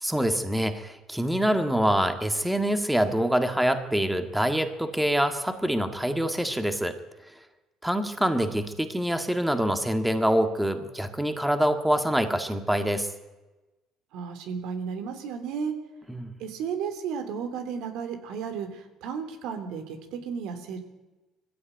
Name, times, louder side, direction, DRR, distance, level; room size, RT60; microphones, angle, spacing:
voice 1, 0.0-7.0 7.8-13.1 16.1-16.3, equal, 5° right, 7 dB, 1.9 m, -25 dB
voice 2, 14.1-15.7 16.4-20.8, right 6 dB, 80° right, 7 dB, 3.1 m, -33 dB
20.5 x 15.0 x 9.2 m, 1.1 s
cardioid pair, 95°, 0 cm